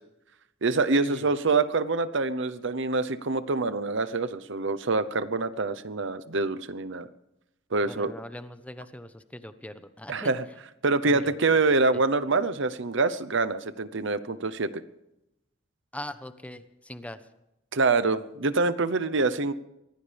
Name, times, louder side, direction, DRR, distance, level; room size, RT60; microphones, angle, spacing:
voice 1, 0.6-7.1 7.7-8.1 10.1-10.4 10.8-14.8 17.7-19.5, right 3 dB, 65° right, 12 dB, 0.9 m, -25 dB
voice 2, 7.8-10.3 11.0-11.3 11.9-12.0 15.9-17.2, left 1 dB, 5° left, 10 dB, 1.0 m, -41 dB
23.5 x 17.0 x 3.5 m, 0.88 s
head